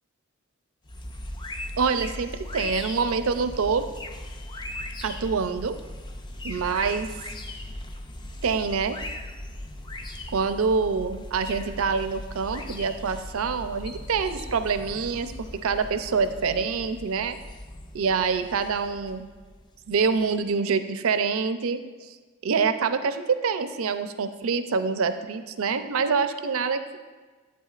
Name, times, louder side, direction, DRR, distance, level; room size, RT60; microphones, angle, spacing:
sound 1, 0.8-20.3, left 1 dB, 20° left, 0.4 m, -39 dB
voice 1, 1.8-3.8 5.0-5.8 6.4-7.1 8.4-9.0 10.3-15.3 15.6-17.4 17.9-19.2 19.9-22.2 22.4-27.0, right 5 dB, 75° right, 10 dB, 0.5 m, -26 dB
11.0 x 8.6 x 2.4 m, 1.4 s
head